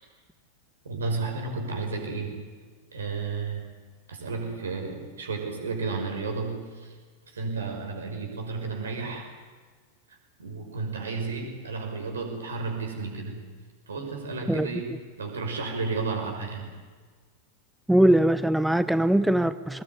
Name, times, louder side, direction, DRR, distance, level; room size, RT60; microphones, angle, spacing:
voice 1, 0.8-2.3 2.9-3.7 4.1-7.0 7.2-9.3 10.1-13.5 13.9-16.7, right 4 dB, 70° right, 3 dB, 5.7 m, -32 dB
voice 2, 17.9-19.8, right 1 dB, 5° right, 14 dB, 0.7 m, -21 dB
22.0 x 20.0 x 9.7 m, 1.5 s
figure-of-eight pair, 90°, 0 cm